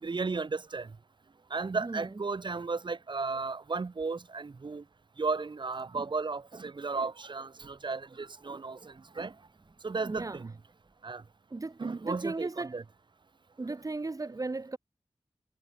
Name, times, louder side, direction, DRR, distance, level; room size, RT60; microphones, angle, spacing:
voice 1, 0.0-0.9 1.5-4.8 5.2-9.3 9.8-10.5 11.0-11.2 11.8-12.8, right 4 dB, 55° right, 3.3 m, -34 dB
voice 2, 10.0-10.4 11.5-12.8 13.6-14.8, right 3 dB, 35° right, 2.8 m, -36 dB
wide cardioid pair, 105°, 10 cm